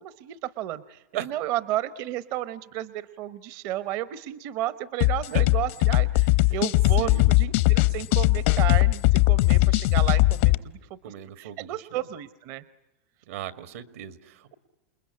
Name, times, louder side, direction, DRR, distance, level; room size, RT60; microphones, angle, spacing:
voice 1, 0.0-11.0 11.4-12.6, right 14 dB, 50° right, 15 dB, 0.9 m, -33 dB
sound 1, 5.0-10.6, left 19 dB, 60° left, 0.8 m, -20 dB
voice 2, 7.0-7.3 11.0-12.1 13.3-14.5, right 11 dB, 75° right, 12 dB, 1.9 m, -37 dB
28.5 x 21.0 x 9.6 m, 1.0 s
supercardioid pair, 140°, 7 cm